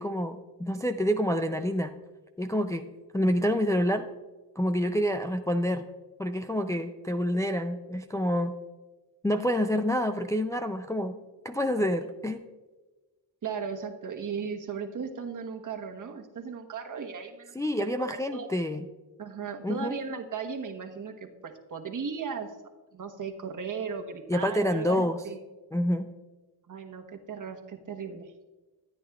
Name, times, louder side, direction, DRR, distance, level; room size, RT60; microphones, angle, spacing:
voice 1, 0.0-1.9 2.4-2.9 3.1-4.1 4.6-5.9 6.2-8.6 9.2-11.2 11.4-12.4 17.5-18.8 19.6-19.9 24.3-25.2 25.7-26.1, equal, 10° left, 6 dB, 0.4 m, -27 dB
voice 2, 13.4-17.5 18.0-18.5 19.2-22.5 22.9-25.4 26.7-28.3, right 6 dB, 50° right, 4 dB, 1.3 m, -36 dB
13.5 x 9.1 x 2.4 m, 1.2 s
cardioid pair, 80°, 41 cm